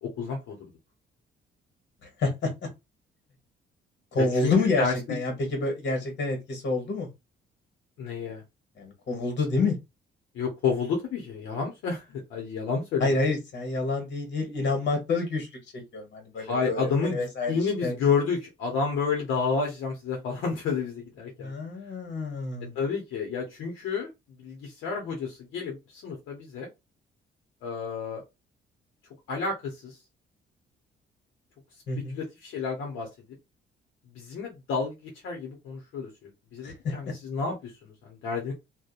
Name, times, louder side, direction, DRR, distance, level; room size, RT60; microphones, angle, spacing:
voice 1, 0.0-0.7 4.2-5.2 8.0-8.4 10.3-13.1 16.4-21.5 22.7-24.1 24.4-26.7 27.6-28.2 29.3-30.0 32.1-33.1 34.1-38.5, left 5 dB, 85° left, 0.8 m, -30 dB
voice 2, 2.2-2.5 4.1-7.1 8.8-9.8 13.0-15.5 15.7-17.5 17.8-17.9 21.4-22.7 31.9-32.2 36.6-36.9, left 3 dB, 65° left, 1.2 m, -28 dB
2.6 x 2.2 x 2.3 m
cardioid pair, 90°, 20 cm